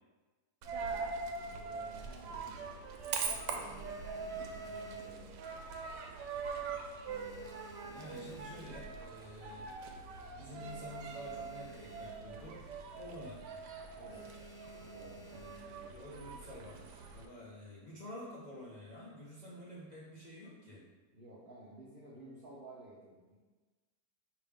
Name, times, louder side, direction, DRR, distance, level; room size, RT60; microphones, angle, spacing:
Coin (dropping), 0.6-17.3, right 5 dB, 90° right, 1.2 m, -43 dB
voice 1, 0.8-2.7 3.2-5.3 14.0-14.2 14.9-15.2 21.1-23.4, right 1 dB, 55° right, -6 dB, 0.6 m, -55 dB
sound 1, 2.5-3.0 3.4-5.9 6.2-6.6 6.8-9.1 9.6-9.7 9.8-10.0 10.3-12.5 12.8-13.0 13.4-13.6 14.1-15.9 16.6-17.2, left 1 dB, 90° left, 1.2 m, -55 dB
voice 2, 7.8-9.7 10.4-12.7 13.0-13.5 15.3-20.8, left 1 dB, 45° left, -8 dB, 0.6 m, -49 dB
5.0 x 2.9 x 3.4 m, 1.3 s
omnidirectional pair, 1.7 m